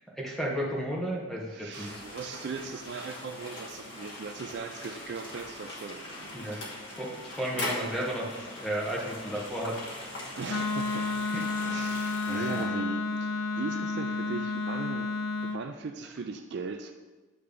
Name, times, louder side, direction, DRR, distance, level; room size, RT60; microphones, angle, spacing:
voice 1, 0.1-2.0 6.3-6.6 7.0-9.8 11.3-11.4 12.0-12.8, right 1 dB, ahead, -3 dB, 1.1 m, -33 dB
voice 2, 1.5-6.7 7.1-7.3 10.3-11.1 11.7-15.1 15.4-16.9, right 4 dB, 55° right, 6 dB, 0.3 m, -39 dB
sound 1, 1.7-12.6, left 1 dB, 55° left, 1.5 m, -41 dB
Wind instrument woodwind instrument, 10.5-15.6, left 3 dB, 75° left, 0.4 m, -31 dB
8.6 x 3.3 x 5.2 m, 1.2 s
head